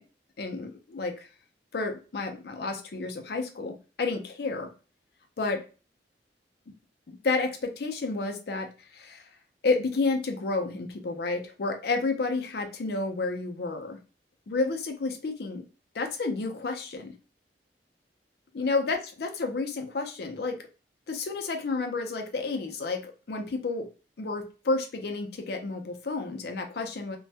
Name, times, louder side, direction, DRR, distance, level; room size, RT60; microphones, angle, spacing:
voice 1, 0.4-1.3 1.7-4.7 5.4-5.6 7.1-8.7 8.9-9.2 9.6-14.0 14.5-15.6 15.9-17.1 18.5-20.6 21.1-23.9 24.2-27.2, left 3 dB, 60° left, 4 dB, 0.5 m, -30 dB
2.2 x 2.1 x 2.6 m, 0.33 s
head